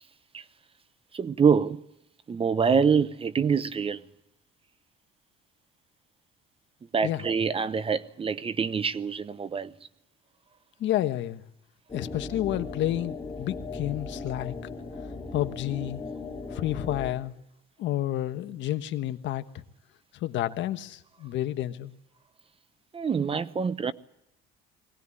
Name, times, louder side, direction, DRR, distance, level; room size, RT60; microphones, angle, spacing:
voice 1, 1.1-1.8 2.3-4.0 6.9-9.7 22.9-23.9, right 6 dB, 25° right, 0.9 m, -25 dB
voice 2, 10.8-11.4 11.9-14.5 15.3-16.0 16.5-17.3 17.8-19.6 20.1-22.0, left 13 dB, 65° left, 1.4 m, -30 dB
sound 1, 11.9-17.1, left 3 dB, 20° left, 3.7 m, -38 dB
22.0 x 18.5 x 9.9 m
cardioid pair, 115°, 20 cm